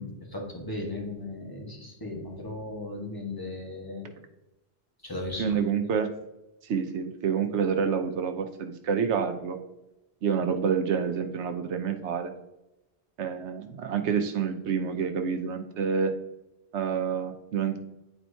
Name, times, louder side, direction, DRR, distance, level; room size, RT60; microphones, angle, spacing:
voice 1, 0.0-4.1 5.0-5.5, left 2 dB, 20° left, -1 dB, 1.4 m, -36 dB
voice 2, 5.4-6.1 6.6-9.6 10.2-12.3 13.2-16.1 16.7-17.8, right 6 dB, 85° right, 7 dB, 1.0 m, -28 dB
9.9 x 4.4 x 2.7 m, 0.95 s
omnidirectional pair, 1.1 m